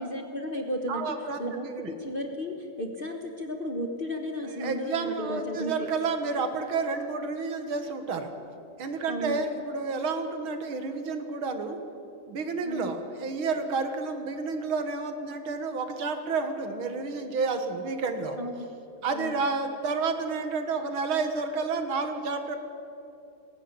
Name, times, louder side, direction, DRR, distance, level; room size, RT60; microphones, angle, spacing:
voice 1, 0.0-1.7 2.0-5.9 9.1-9.4 12.6-12.9 18.4-18.8 19.1-19.3, equal, 30° left, 3 dB, 1.3 m, -34 dB
voice 2, 0.9-1.4 1.8-1.9 4.6-8.3 8.8-11.8 12.3-18.4 19.0-22.6, right 4 dB, 85° right, 7 dB, 2.4 m, -30 dB
19.0 x 16.5 x 9.7 m, 2.8 s
omnidirectional pair, 2.2 m